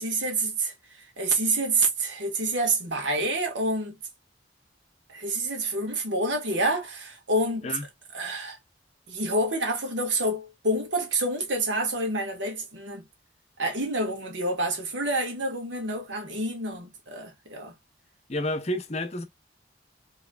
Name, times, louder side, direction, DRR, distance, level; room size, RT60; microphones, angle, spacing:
voice 1, 0.0-4.0 5.1-7.8 8.1-8.6 9.1-13.0 13.6-17.7, right 2 dB, 75° right, 1.6 m, -28 dB
voice 2, 18.3-19.2, left 1 dB, 35° left, 0.7 m, -30 dB
4.8 x 3.1 x 2.3 m
head